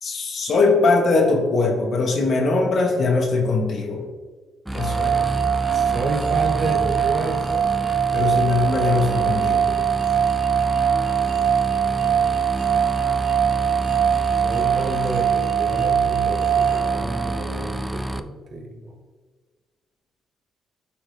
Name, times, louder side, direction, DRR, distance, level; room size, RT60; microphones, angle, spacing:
voice 1, 0.0-4.0 4.7-5.1 8.1-9.7, left 3 dB, 55° left, 1 dB, 1.0 m, -21 dB
sound 1, 4.7-18.2, right 1 dB, 5° right, 0.3 m, -29 dB
sound 2, 4.7-17.7, right 9 dB, 80° right, 1.4 m, -22 dB
voice 2, 5.7-7.6 14.4-18.9, right 2 dB, 55° right, 3 dB, 1.0 m, -30 dB
9.8 x 3.5 x 3.3 m, 1.4 s
cardioid pair, 90°, 0 cm